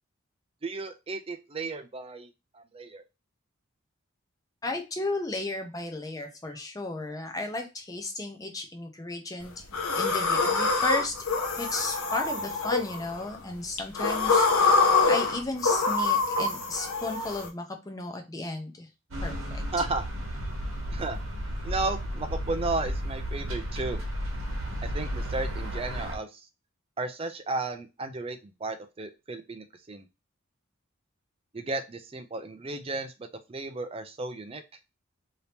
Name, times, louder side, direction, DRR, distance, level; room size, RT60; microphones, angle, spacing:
voice 1, 0.6-3.0 19.7-20.0 20.9-21.2 21.6-24.0 24.8-26.5 27.0-30.1 31.5-33.1 33.5-34.6, right 3 dB, 25° right, 7 dB, 0.4 m, -34 dB
voice 2, 4.6-9.5 10.0-11.1 11.6-18.9 19.2-19.6, left 2 dB, 15° left, 4 dB, 0.6 m, -34 dB
sound 1, 9.7-13.3 13.8-17.5, left 4 dB, 85° left, 0.8 m, -25 dB
sound 2, 19.1-26.2, equal, 75° right, 1.0 m, -33 dB
2.8 x 2.8 x 3.3 m, 0.26 s
head